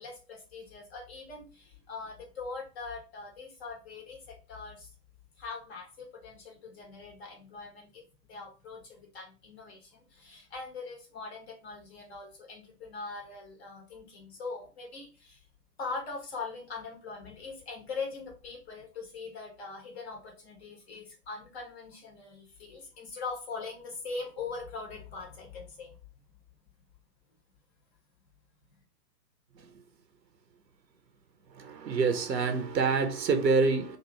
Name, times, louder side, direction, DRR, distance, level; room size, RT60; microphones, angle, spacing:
voice 1, 0.0-4.9 5.4-8.0 8.3-15.4 15.8-26.0, left 4 dB, 40° left, 1.4 m, -42 dB
voice 2, 31.5-34.0, right 4 dB, 90° right, 0.7 m, -27 dB
3.1 x 2.4 x 3.2 m
figure-of-eight pair, 130°, 49 cm